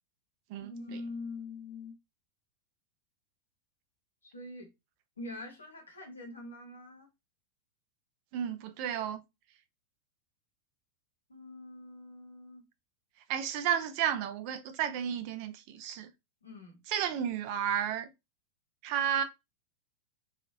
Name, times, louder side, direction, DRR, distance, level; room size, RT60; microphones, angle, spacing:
voice 1, 0.6-2.0 4.2-4.7 5.2-7.1 11.3-12.6 15.1-15.2 16.4-16.8, left 2 dB, 75° left, 1.0 m, -44 dB
voice 2, 8.3-9.2 13.3-16.1 16.9-18.1 18.8-19.2, right 9 dB, 45° right, 0.4 m, -32 dB
2.8 x 2.4 x 2.6 m
figure-of-eight pair, 90°, 0 cm